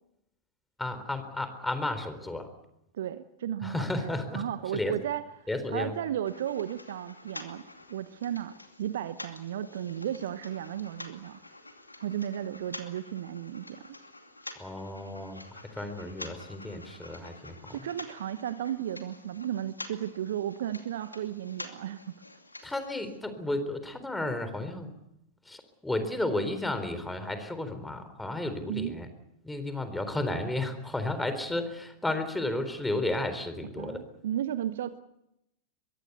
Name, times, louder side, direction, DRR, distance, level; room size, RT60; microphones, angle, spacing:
voice 1, 0.8-2.5 3.6-4.4 4.7-4.9 5.5-5.9 14.6-17.8 22.6-24.9 25.5-29.1 29.4-34.0, left 2 dB, 5° left, 9 dB, 3.9 m, -33 dB
voice 2, 2.9-3.9 4.3-7.6 7.9-11.4 12.0-13.8 17.7-22.2 28.7-29.0 33.8-35.0, right 10 dB, 60° right, 14 dB, 1.0 m, -34 dB
sound 1, 6.2-23.2, left 2 dB, 85° left, 2.5 m, -47 dB
24.0 x 22.5 x 6.9 m, 0.83 s
figure-of-eight pair, 90°, 0 cm